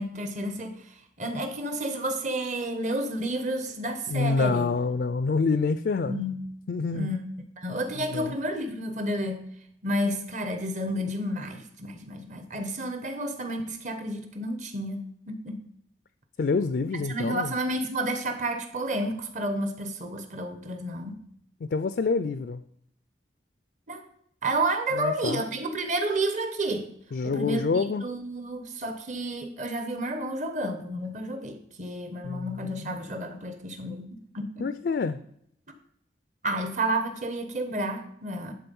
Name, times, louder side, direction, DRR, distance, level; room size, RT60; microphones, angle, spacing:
voice 1, 0.0-4.7 6.0-6.4 6.9-7.2 7.6-9.5 9.8-15.6 16.9-21.2 23.9-24.0 24.4-26.9 27.2-34.7 36.4-38.5, right 1 dB, 40° right, 6 dB, 1.0 m, -31 dB
voice 2, 4.1-6.2 6.7-7.1 8.0-8.3 16.4-17.5 21.6-22.6 24.9-25.4 27.1-28.1 32.2-32.9 34.6-35.2, left 4 dB, 60° left, 11 dB, 0.3 m, -27 dB
11.5 x 3.8 x 5.4 m, 0.71 s
head